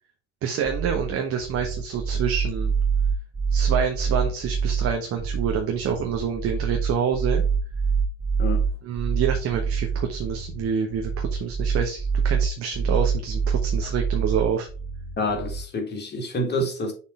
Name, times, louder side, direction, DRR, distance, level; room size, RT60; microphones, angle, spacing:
voice 1, 0.4-2.7 3.5-7.4 8.8-14.7, right 7 dB, 40° right, 1.0 m, -27 dB
sound 1, 0.6-15.6, right 6 dB, 25° right, 1.9 m, -25 dB
voice 2, 15.2-16.9, left 1 dB, 30° left, 2.2 m, -27 dB
6.5 x 3.6 x 4.8 m
figure-of-eight pair, 60°, 35 cm